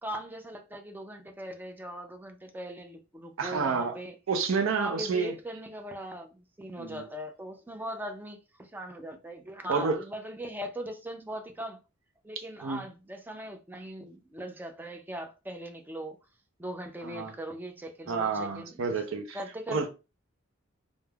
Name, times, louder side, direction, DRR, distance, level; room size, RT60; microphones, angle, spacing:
voice 1, 0.0-4.2 4.8-11.8 12.2-16.2 16.6-18.8 19.3-19.9, right 1 dB, 10° right, 0.3 m, -40 dB
voice 2, 3.4-3.9 4.3-5.3 6.8-7.0 9.7-10.0 12.6-12.8 17.0-17.3 18.1-19.4 19.7-19.9, right 4 dB, 75° right, 0.5 m, -29 dB
3.2 x 2.0 x 2.2 m
head